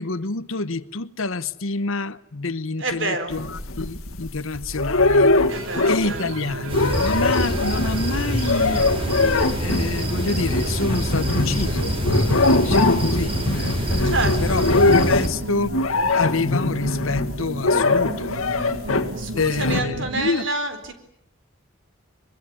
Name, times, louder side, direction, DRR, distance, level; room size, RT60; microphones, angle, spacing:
voice 1, 0.0-9.3 9.6-18.3 19.3-20.5, left 3 dB, 70° left, 1.0 m, -28 dB
voice 2, 2.8-3.4 5.5-6.2 14.0-14.7 19.2-20.9, right 2 dB, 60° right, 4.2 m, -28 dB
sound 1, 3.3-4.4 4.8-6.2 6.5-19.2 19.6-19.8, left 2 dB, 85° left, 1.9 m, -22 dB
sound 2, 3.3-20.3, right 2 dB, 80° right, 1.5 m, -34 dB
sound 3, 6.7-15.3, equal, 25° right, 4.9 m, -26 dB
23.5 x 22.5 x 9.8 m
head